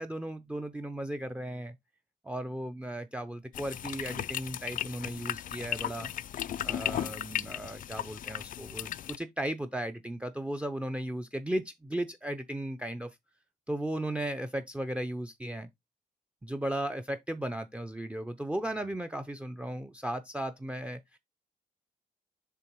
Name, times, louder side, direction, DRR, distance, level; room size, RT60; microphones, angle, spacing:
voice 1, 0.0-1.8 2.2-6.1 6.6-13.1 13.7-15.7 16.4-21.2, right 1 dB, 5° right, 0.6 m, -36 dB
sound 1, 3.5-9.2, left 11 dB, 60° left, 0.4 m, -36 dB
6.9 x 3.5 x 4.6 m
cardioid pair, 105°, 16 cm